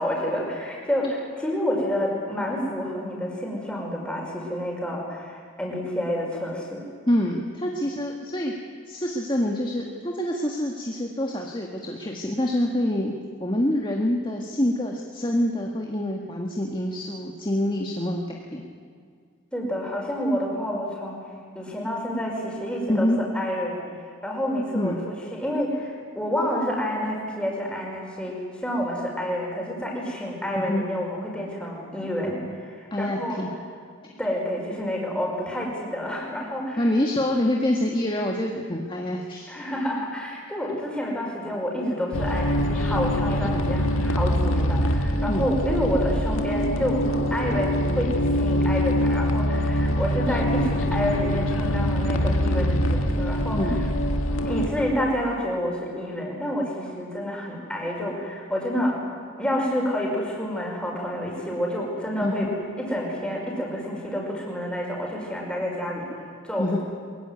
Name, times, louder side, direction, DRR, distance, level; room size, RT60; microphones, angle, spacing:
voice 1, 0.0-6.8 19.5-21.2 21.6-23.8 24.2-24.9 25.3-33.4 34.2-36.9 39.5-47.0 47.3-53.6 54.4-59.0 59.4-62.5 62.8-66.1 66.4-66.7, equal, 5° left, -2 dB, 5.3 m, -28 dB
voice 2, 7.1-8.5 8.9-13.1 13.4-18.7 22.9-23.2 24.7-25.0 30.5-30.9 32.9-33.5 36.8-39.5 43.5-43.7 45.3-45.4 53.5-53.8 62.2-62.6 66.6-66.8, left 1 dB, 25° left, 0 dB, 1.6 m, -26 dB
under everything another layer, 42.1-54.7, equal, 90° left, 1.8 m, -24 dB
23.0 x 21.5 x 9.5 m, 2.1 s
head